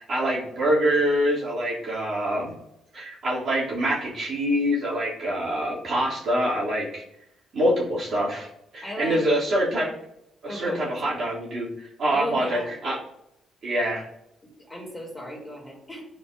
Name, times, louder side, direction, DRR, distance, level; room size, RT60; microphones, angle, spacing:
voice 1, 0.0-2.5 2.9-7.0 7.5-8.5 8.7-9.9 10.4-13.0 13.6-14.0, equal, 55° right, -6 dB, 2.7 m, -25 dB
voice 2, 8.8-9.2 10.5-11.2 12.1-12.7 14.4-16.1, equal, 10° left, -3 dB, 2.8 m, -36 dB
10.5 x 4.6 x 2.6 m, 0.81 s
cardioid pair, 90°, 0 cm